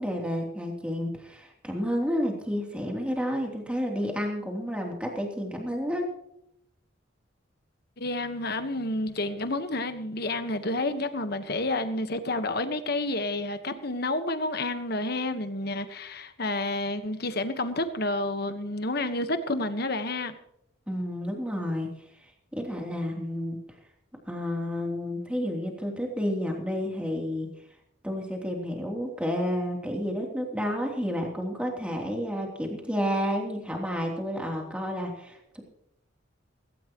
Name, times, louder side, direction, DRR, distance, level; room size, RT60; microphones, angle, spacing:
voice 1, 0.0-6.1 20.9-21.9 22.5-23.6 24.3-27.5 28.0-35.6, equal, 5° right, 3.2 m, -30 dB
voice 2, 8.0-20.3, left 2 dB, 55° left, 1.4 m, -30 dB
18.5 x 17.0 x 3.1 m
head